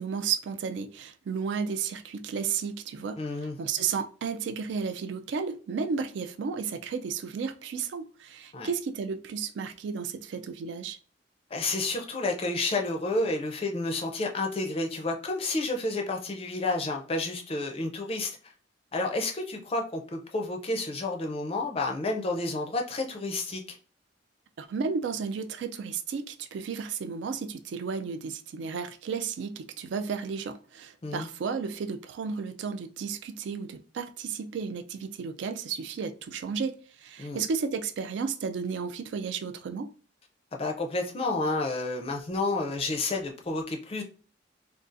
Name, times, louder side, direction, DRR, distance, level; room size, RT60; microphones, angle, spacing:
voice 1, 0.0-11.0 24.6-39.9, right 6 dB, 70° right, 0.3 m, -33 dB
voice 2, 3.2-3.6 8.5-8.7 11.5-18.4 18.9-23.8 31.0-31.3 37.2-37.4 40.5-44.0, left 2 dB, 30° left, 0.4 m, -30 dB
3.8 x 2.3 x 2.5 m
head